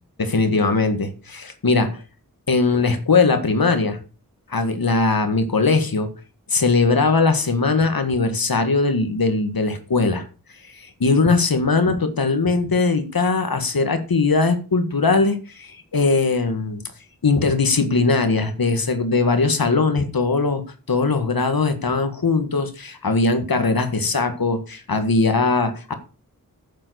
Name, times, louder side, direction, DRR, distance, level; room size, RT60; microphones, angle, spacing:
voice 1, 0.2-2.0 2.5-4.0 4.5-6.1 6.5-10.2 10.8-16.8 17.2-25.9, left 3 dB, 85° left, 8 dB, 1.8 m, -20 dB
9.4 x 7.5 x 6.4 m, 0.34 s
wide cardioid pair, 70°, 35 cm